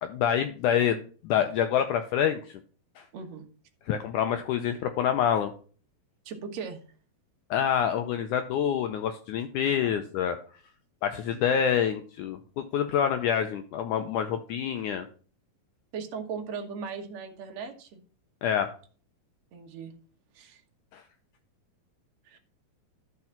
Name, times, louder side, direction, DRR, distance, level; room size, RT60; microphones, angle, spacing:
voice 1, 0.0-2.6 3.0-3.1 3.9-5.5 7.5-10.4 11.0-15.1 18.4-18.7 20.9-21.0, left 8 dB, 85° left, 8 dB, 1.8 m, -27 dB
voice 2, 3.1-3.5 6.3-6.8 10.0-10.1 15.9-18.0 19.5-19.9 20.3-20.6 22.3-22.4, right 5 dB, 55° right, 4 dB, 2.2 m, -38 dB
12.0 x 4.8 x 5.8 m, 0.41 s
omnidirectional pair, 4.2 m